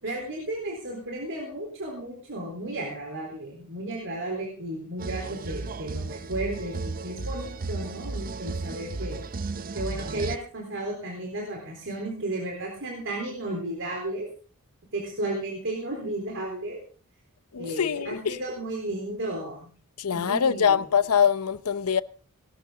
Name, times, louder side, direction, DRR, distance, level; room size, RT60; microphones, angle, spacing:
voice 1, 0.0-9.2 9.7-14.3 14.9-16.8 17.6-19.7 20.1-20.8, right 1 dB, 60° right, 3.9 m, -33 dB
sound 1, 5.0-10.4, right 3 dB, 40° right, 0.6 m, -34 dB
voice 2, 17.5-18.4 20.0-22.0, left 7 dB, 85° left, 0.7 m, -24 dB
19.5 x 12.5 x 3.8 m
head